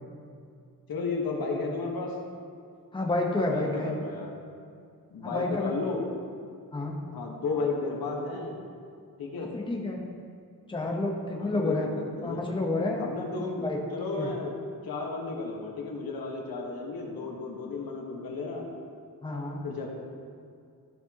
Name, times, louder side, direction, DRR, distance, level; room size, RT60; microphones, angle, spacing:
voice 1, 0.9-2.1 3.5-4.3 5.1-6.1 7.1-8.6 9.2-9.5 11.4-12.5 13.0-13.7 13.9-14.5 14.8-18.7 19.6-19.9, left 3 dB, 80° left, 0 dB, 1.3 m, -33 dB
voice 2, 2.9-3.9 5.2-5.7 6.7-7.0 9.4-10.0 10.7-11.9 12.2-13.0 13.4-13.8 14.2-14.3 19.2-19.6, left 2 dB, 15° left, 0 dB, 0.9 m, -29 dB
12.5 x 6.1 x 2.9 m, 2.3 s
wide cardioid pair, 135°, 35 cm